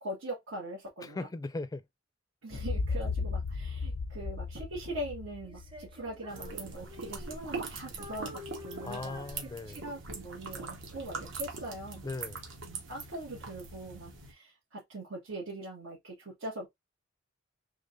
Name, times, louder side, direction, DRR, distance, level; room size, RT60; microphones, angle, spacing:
voice 1, 0.0-1.3 2.4-12.1 12.6-16.7, right 1 dB, 90° right, 1.7 m, -42 dB
voice 2, 1.0-1.8 8.8-9.8 12.0-12.4, left 2 dB, 20° left, 0.4 m, -38 dB
sound 1, 2.5-6.4, left 4 dB, 85° left, 0.5 m, -35 dB
Female singing, 5.4-7.7 8.0-10.0, left 2 dB, 25° right, 0.7 m, -48 dB
sound 2, 6.3-14.3, right 4 dB, 70° right, 1.2 m, -42 dB
3.7 x 3.4 x 2.5 m
head